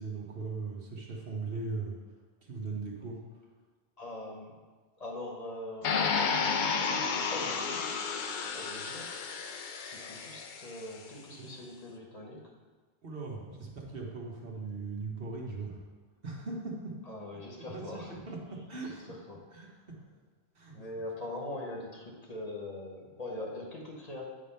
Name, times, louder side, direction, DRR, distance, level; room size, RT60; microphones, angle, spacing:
voice 1, 0.0-1.9 2.4-3.2 13.0-15.8 16.2-16.9 17.6-18.4 18.7-19.0 19.5-19.7 20.5-20.8, right 3 dB, 60° right, -1 dB, 1.4 m, -39 dB
voice 2, 4.0-4.5 5.0-8.0 8.5-9.1 9.4-9.5 9.8-12.5 17.1-18.1 18.8-19.9 20.7-24.2, left 1 dB, 35° left, -1 dB, 1.2 m, -42 dB
sound 1, 5.8-10.8, left 5 dB, 55° left, 0.6 m, -32 dB
8.6 x 3.5 x 5.5 m, 1.4 s
omnidirectional pair, 1.1 m